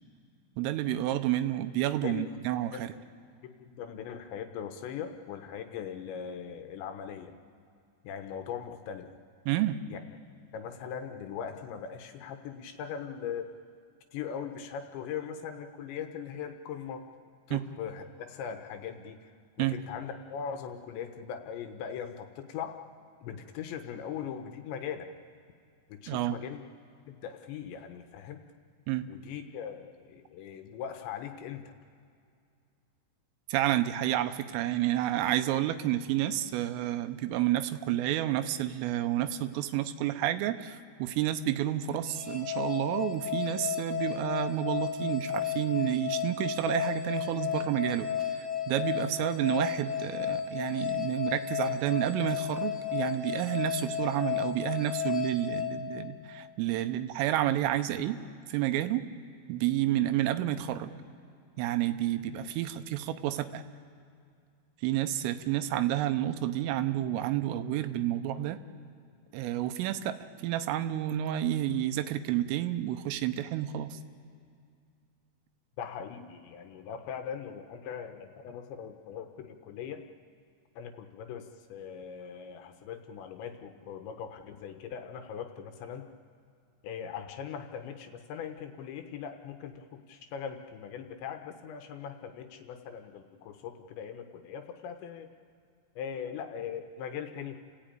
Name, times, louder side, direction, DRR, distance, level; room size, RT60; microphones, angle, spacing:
voice 1, 0.6-2.9 9.5-9.8 17.5-17.6 19.6-19.7 26.1-26.4 28.9-29.1 33.5-48.1 48.3-58.2 58.5-59.0 59.5-60.9 61.6-63.6 64.8-68.6 69.3-70.2 70.4-74.0, right 13 dB, 90° right, 10 dB, 3.5 m, -30 dB
voice 2, 3.4-7.3 8.0-9.1 9.9-10.0 10.5-13.5 14.1-17.0 17.5-19.3 19.6-22.8 23.2-25.1 25.9-26.6 27.1-28.4 29.1-31.7 75.8-80.0 80.8-86.0 86.8-95.3 96.0-97.6, left 8 dB, 75° left, 6 dB, 3.0 m, -40 dB
sound 1, 42.1-56.5, left 9 dB, 10° right, 1.7 m, -33 dB
30.0 x 15.5 x 9.0 m, 2.3 s
omnidirectional pair, 5.8 m